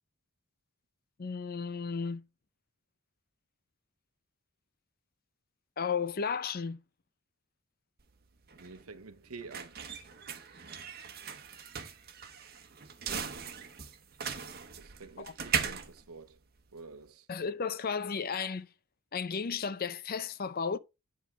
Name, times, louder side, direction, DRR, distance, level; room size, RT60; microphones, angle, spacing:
voice 1, 1.2-2.2 5.8-6.8 15.2-15.3 17.3-18.7 19.1-20.8, left 5 dB, 45° left, 0.6 m, -34 dB
sound 1, 8.0-17.1, right 7 dB, 45° right, 1.0 m, -39 dB
voice 2, 8.6-9.8 14.8-16.4 16.7-17.3, right 4 dB, 90° right, 0.9 m, -48 dB
9.6 x 3.7 x 4.7 m
head